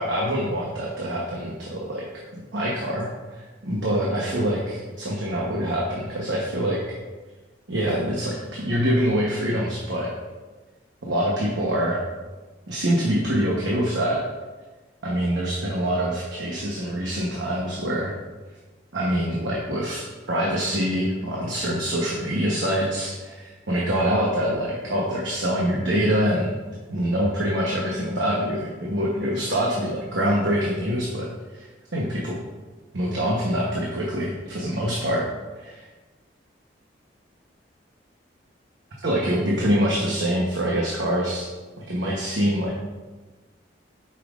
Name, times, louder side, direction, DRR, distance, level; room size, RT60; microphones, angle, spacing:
voice 1, 0.0-2.1 2.5-7.0 7.7-10.1 11.1-12.0 12.7-14.2 15.0-18.1 18.9-26.5 26.9-31.7 31.9-32.4 32.9-35.3 35.6-35.9 39.0-41.5 41.8-42.7, equal, 85° right, -3 dB, 1.0 m, -25 dB
8.4 x 5.7 x 2.5 m, 1.2 s
head